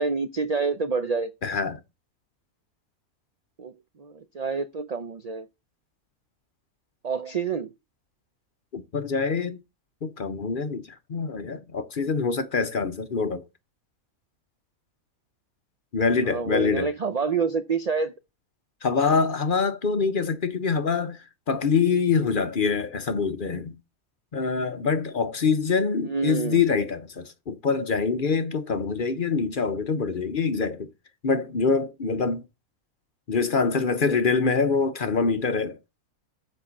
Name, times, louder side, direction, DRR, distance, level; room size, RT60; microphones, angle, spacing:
voice 1, 0.0-1.3 3.6-3.7 4.0-5.5 7.0-7.7 16.3-18.2 26.0-26.6 33.7-34.3, right 5 dB, 70° right, 0.3 m, -28 dB
voice 2, 1.4-1.8 8.7-9.6 10.0-13.4 15.9-16.9 18.8-23.7 24.3-30.9 31.2-32.4 33.3-35.8, left 5 dB, 45° left, 0.8 m, -25 dB
7.6 x 4.5 x 7.0 m
omnidirectional pair, 1.5 m